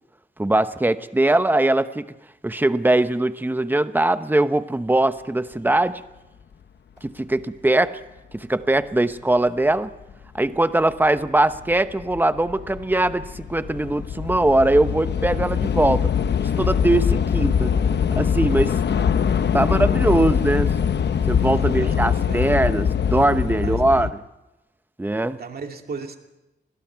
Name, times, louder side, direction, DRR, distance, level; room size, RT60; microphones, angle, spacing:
voice 1, 0.4-2.0 2.4-6.0 7.0-8.0 8.3-9.9 10.3-16.1 16.6-17.8 18.2-18.8 19.5-20.7 21.3-24.2 25.0-25.4, right 2 dB, 10° right, 11 dB, 0.8 m, -21 dB
Train / Subway metro underground, 10.1-10.2 11.0-11.3 11.5-24.1, left 7 dB, 80° left, 0.9 m, -23 dB
voice 2, 21.6-22.5 23.6-24.1 25.3-26.2, right 5 dB, 60° right, 4 dB, 2.5 m, -36 dB
29.5 x 21.0 x 4.6 m, 0.97 s
wide cardioid pair, 145°, 18 cm